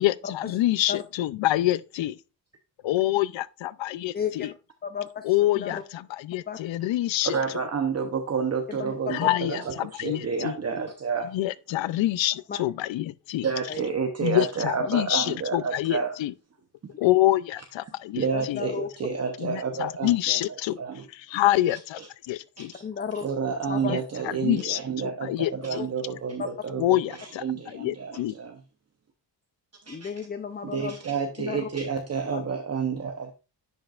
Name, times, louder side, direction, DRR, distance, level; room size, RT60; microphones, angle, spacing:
voice 1, 0.0-2.2 2.8-4.5 5.2-7.3 9.1-10.5 11.3-13.5 14.2-16.3 17.0-18.6 19.4-20.8 21.3-22.0 22.3-22.7 23.9-24.0 24.4-24.8 25.2-25.8 26.8-28.3, left 15 dB, 90° left, 0.6 m, -26 dB
voice 2, 4.1-4.5 4.8-5.8 6.5-6.6 8.7-9.3 12.5-12.6 13.7-13.8 14.8-15.0 18.3-18.9 22.8-23.3 23.7-24.0 24.2-24.3 25.7-25.9 29.9-31.0 31.4-31.7 32.3-32.4, left 7 dB, 25° left, 0.5 m, -33 dB
voice 3, 7.2-11.3 13.4-16.1 16.8-16.9 18.1-20.4 20.8-21.1 21.7-22.1 22.6-22.8 23.2-28.6 29.9-30.1 30.6-33.3, right 6 dB, 35° right, 0.8 m, -30 dB
10.5 x 5.3 x 2.4 m
cardioid pair, 120°, 44 cm